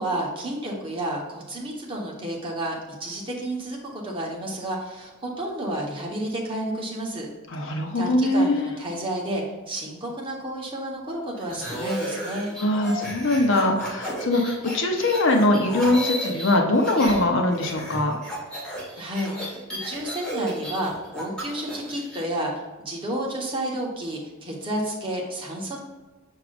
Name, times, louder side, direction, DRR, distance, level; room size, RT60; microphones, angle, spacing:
voice 1, 0.0-7.3 7.7-12.5 19.0-25.8, right 1 dB, 25° right, -3 dB, 1.3 m, -31 dB
voice 2, 7.5-8.7 12.6-18.2, left 1 dB, 65° left, 3 dB, 0.8 m, -22 dB
sound 1, 11.4-17.2 17.5-22.2, equal, 5° left, 1.9 m, -34 dB
6.6 x 5.9 x 2.6 m, 1.2 s
head